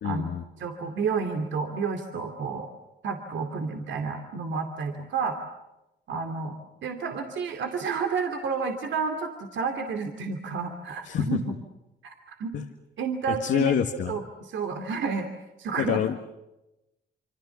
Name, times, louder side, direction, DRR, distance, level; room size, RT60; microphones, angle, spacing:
voice 1, 0.0-0.4 11.0-11.3 12.5-12.6 13.3-14.2 15.8-16.2, left 9 dB, 70° left, 3 dB, 1.8 m, -27 dB
voice 2, 0.6-2.7 3.0-5.4 6.1-6.6 6.8-11.4 12.0-12.5 13.0-15.3 15.6-16.0, right 5 dB, 70° right, 5 dB, 2.7 m, -30 dB
27.5 x 25.5 x 7.2 m, 0.95 s
cardioid pair, 90°, 20 cm